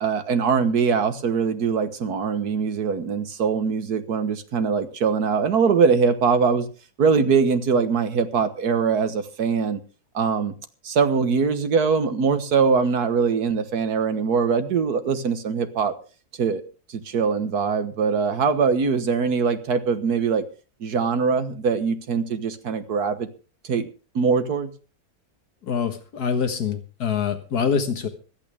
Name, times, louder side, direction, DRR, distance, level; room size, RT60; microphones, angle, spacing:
voice 1, 0.0-6.7 7.0-9.8 10.1-10.5 10.8-15.9 16.4-16.6 16.9-20.4 20.8-23.3 23.6-23.9 24.2-24.7, right 5 dB, 75° right, 10 dB, 1.8 m, -22 dB
voice 2, 25.6-28.1, left 6 dB, 75° left, 7 dB, 2.0 m, -25 dB
25.0 x 8.8 x 3.5 m, 0.36 s
omnidirectional pair, 1.7 m